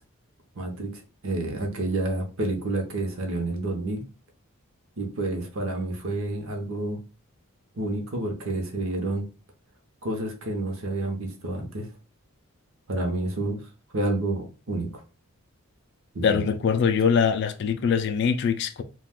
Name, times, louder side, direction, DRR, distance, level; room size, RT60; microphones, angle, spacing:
voice 1, 0.6-0.9 1.2-4.0 5.0-7.0 7.8-9.3 10.0-11.9 12.9-13.6 13.9-14.9 16.1-16.4, right 2 dB, 65° right, 0.8 m, -29 dB
voice 2, 16.2-18.8, left 6 dB, 55° left, 0.3 m, -23 dB
2.3 x 2.2 x 3.5 m
head